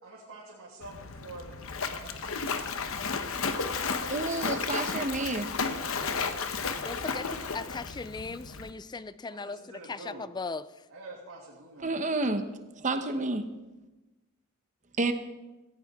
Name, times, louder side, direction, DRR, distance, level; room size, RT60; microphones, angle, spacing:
voice 1, 0.0-2.5 3.5-4.5 4.8-5.4 9.3-10.2 10.9-11.9, right 2 dB, 85° right, -5 dB, 2.6 m, -48 dB
Splash splatter, 0.8-8.7, left 5 dB, 70° left, 1.0 m, -33 dB
voice 2, 4.1-5.5 11.8-12.5 12.8-13.5 15.0-15.1, right 2 dB, 35° right, 8 dB, 1.0 m, -29 dB
voice 3, 6.8-10.9, left 4 dB, 20° left, 15 dB, 0.4 m, -38 dB
16.5 x 16.0 x 3.7 m, 1.1 s
head